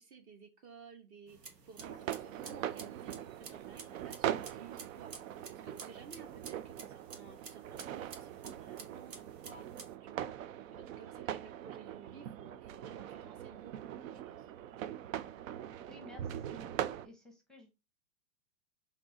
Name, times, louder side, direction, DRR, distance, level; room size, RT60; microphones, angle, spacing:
voice 1, 0.0-5.1 5.6-9.7 10.0-10.3 10.7-14.5, right 5 dB, 30° right, 6 dB, 0.8 m, -55 dB
sound 1, 1.3-9.9, right 4 dB, 80° right, 1.3 m, -52 dB
sound 2, 1.8-17.1, right 11 dB, 55° right, 0.5 m, -42 dB
voice 2, 15.8-16.7 17.0-17.8, left 3 dB, ahead, 2 dB, 0.7 m, -54 dB
4.2 x 2.7 x 4.2 m, 0.27 s
hypercardioid pair, 115°, 49 cm